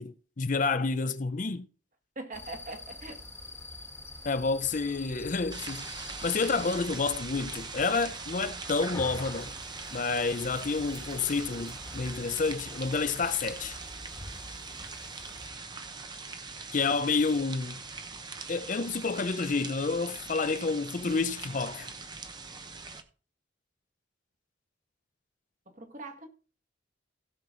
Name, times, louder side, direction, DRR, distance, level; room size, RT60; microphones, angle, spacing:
voice 1, 0.0-1.7 4.2-5.9 6.2-9.5 9.9-13.8 16.7-17.8 18.5-21.9, left 4 dB, 45° left, 0.6 m, -29 dB
voice 2, 2.2-3.2 25.8-26.3, right 2 dB, 40° right, 1.8 m, -42 dB
sound 1, 2.3-15.5, left 1 dB, 15° left, 1.6 m, -46 dB
sound 2, 5.5-23.0, right 4 dB, 25° right, 0.9 m, -42 dB
16.0 x 5.9 x 3.9 m
head